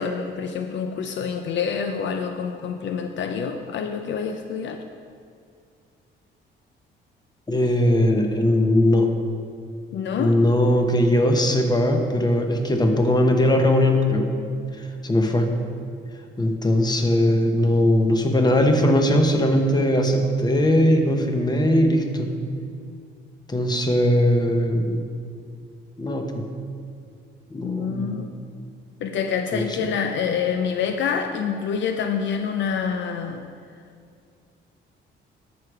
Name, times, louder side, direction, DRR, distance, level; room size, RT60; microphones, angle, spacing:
voice 1, 0.0-4.8 9.9-10.4 27.6-28.3 29.0-33.5, left 6 dB, 65° left, 6 dB, 0.5 m, -27 dB
voice 2, 7.5-9.1 10.2-14.3 14.8-15.5 16.4-22.3 23.5-25.0 26.0-26.4 27.5-28.2 29.5-29.9, left 1 dB, 20° left, 4 dB, 1.1 m, -20 dB
13.0 x 4.9 x 4.9 m, 2.3 s
cardioid pair, 90°, 20 cm